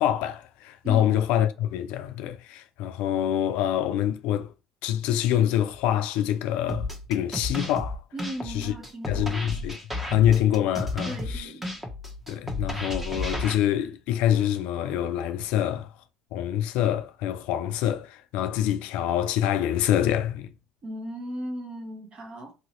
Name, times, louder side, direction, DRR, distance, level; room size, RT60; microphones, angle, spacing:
voice 1, 0.0-4.5 4.8-8.0 8.5-8.7 9.1-9.8 10.1-11.5 12.3-15.9 16.3-20.5, left 11 dB, 70° left, 0.4 m, -25 dB
voice 2, 0.8-1.1 8.1-9.5 11.0-11.7 20.8-22.5, equal, 45° right, 1.1 m, -37 dB
sound 1, 6.7-13.5, left 1 dB, 10° right, 1.0 m, -32 dB
2.9 x 2.8 x 3.0 m
hypercardioid pair, 70°, 2 cm